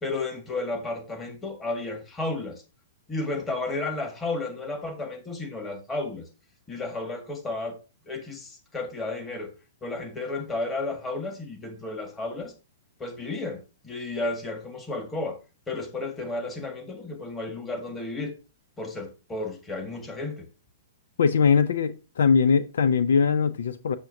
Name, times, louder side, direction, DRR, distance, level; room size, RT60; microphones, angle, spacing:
voice 1, 0.0-2.6 3.1-6.3 6.7-7.8 8.1-9.5 9.8-12.5 13.0-15.4 15.7-18.3 18.8-20.5, left 2 dB, 15° left, 1.7 m, -32 dB
voice 2, 21.2-24.0, left 6 dB, 75° left, 0.5 m, -21 dB
7.1 x 6.5 x 2.7 m
hypercardioid pair, 125°, 0 cm